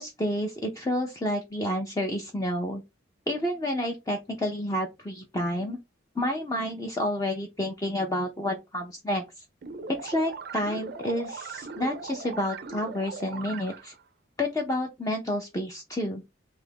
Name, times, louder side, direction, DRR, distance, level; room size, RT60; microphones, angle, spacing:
voice 1, 0.0-2.8 3.3-5.8 6.2-9.4 10.0-13.9 14.4-16.2, left 1 dB, 15° left, 0.4 m, -30 dB
sound 1, 9.6-14.0, right 4 dB, 50° right, 0.4 m, -39 dB
2.8 x 2.5 x 3.4 m
head